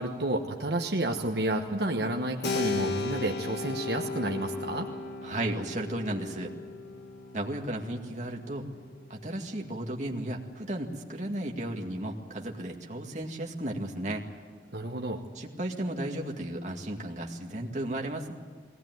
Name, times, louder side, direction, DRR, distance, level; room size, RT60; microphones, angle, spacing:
voice 1, 0.0-4.9 14.7-15.2, right 1 dB, 70° right, 2 dB, 1.2 m, -30 dB
Keyboard (musical), 2.4-10.8, left 3 dB, 70° left, 1.8 m, -37 dB
voice 2, 5.2-6.6 7.3-8.7 9.1-14.2 15.4-18.3, right 1 dB, 40° right, 1 dB, 2.0 m, -34 dB
21.0 x 18.0 x 9.3 m, 1.6 s
head